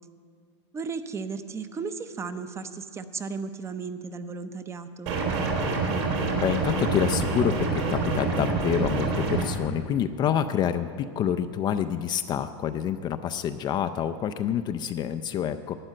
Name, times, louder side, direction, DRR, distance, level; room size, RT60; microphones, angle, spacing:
voice 1, 0.7-5.1, right 5 dB, 20° right, 10 dB, 0.6 m, -35 dB
sound 1, 5.1-9.4, right 3 dB, 70° right, 3.2 m, -26 dB
voice 2, 6.4-15.9, left 9 dB, 30° left, 10 dB, 0.4 m, -27 dB
12.0 x 8.9 x 7.6 m, 2.1 s
supercardioid pair, 130°, 16 cm